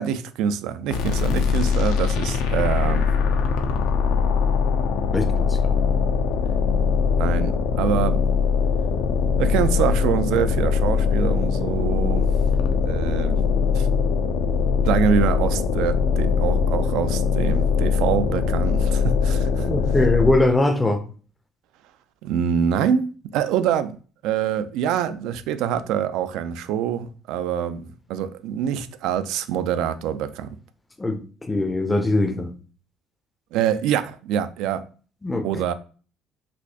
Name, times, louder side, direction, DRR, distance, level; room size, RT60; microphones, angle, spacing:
voice 1, 0.0-3.1 7.2-8.2 9.4-12.3 12.8-13.4 13.7-13.9 14.8-19.7 22.2-24.0 24.2-30.6 33.5-34.8 35.4-35.7, right 9 dB, 75° right, 0.3 m, -25 dB
sound 1, 0.9-20.5, left 6 dB, 80° left, 0.5 m, -21 dB
voice 2, 5.1-5.8 19.7-21.1 31.0-32.5 35.2-35.6, left 2 dB, 15° left, 0.5 m, -22 dB
4.1 x 2.3 x 2.8 m
supercardioid pair, 90°, 0 cm